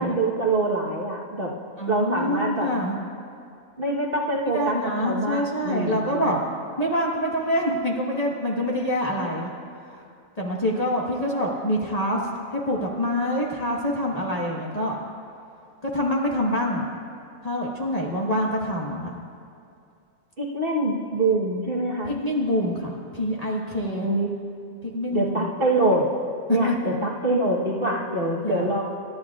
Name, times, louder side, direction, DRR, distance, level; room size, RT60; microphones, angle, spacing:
voice 1, 0.0-1.5 1.9-2.7 3.8-4.8 5.0-6.3 20.4-22.1 24.0-24.4 25.1-26.0 26.5-28.8, right 2 dB, 40° right, -3 dB, 1.4 m, -25 dB
voice 2, 1.8-3.0 4.5-6.4 6.8-9.5 9.9-10.0 10.4-12.2 12.5-15.0 15.8-16.9 17.4-19.2 22.1-24.1 24.8-25.5 26.5-26.9 28.4-28.7, equal, 25° left, -3 dB, 1.4 m, -26 dB
26.5 x 11.5 x 2.4 m, 2.5 s
omnidirectional pair, 1.5 m